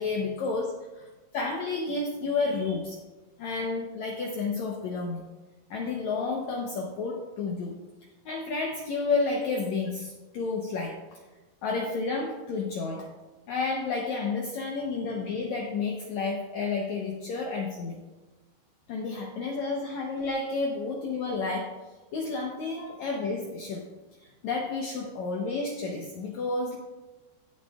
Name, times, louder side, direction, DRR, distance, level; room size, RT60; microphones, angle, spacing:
voice 1, 0.0-1.1 1.3-3.0 3.4-5.2 5.7-7.8 8.2-11.2 11.6-13.1 13.5-18.0 18.9-21.8 22.1-23.9 24.2-26.8, left 4 dB, 90° left, 1 dB, 1.6 m, -31 dB
17.0 x 8.4 x 2.4 m, 1.2 s
omnidirectional pair, 4.5 m